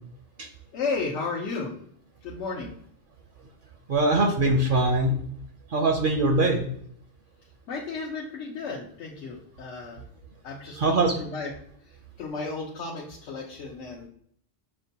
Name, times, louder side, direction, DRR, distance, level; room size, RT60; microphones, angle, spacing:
voice 1, 0.7-1.8 2.2-2.7 7.7-10.0 10.4-11.5 11.9-14.1, left 4 dB, 85° left, -3 dB, 1.0 m, -34 dB
voice 2, 3.9-5.2 5.7-6.7 10.8-11.2, right 2 dB, 60° right, 3 dB, 0.6 m, -22 dB
6.5 x 2.2 x 2.7 m, 0.65 s
omnidirectional pair, 1.2 m